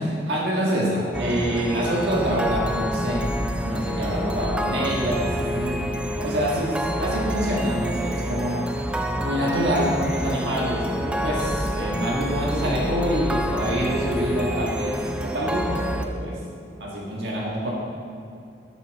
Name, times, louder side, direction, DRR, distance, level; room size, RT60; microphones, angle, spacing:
voice 1, 0.0-3.3 3.6-8.6 9.2-16.4 16.8-17.7, equal, 75° right, -4 dB, 1.7 m, -26 dB
sound 1, 1.1-16.1, equal, 5° right, 0.4 m, -28 dB
10.5 x 6.8 x 4.1 m, 2.5 s
head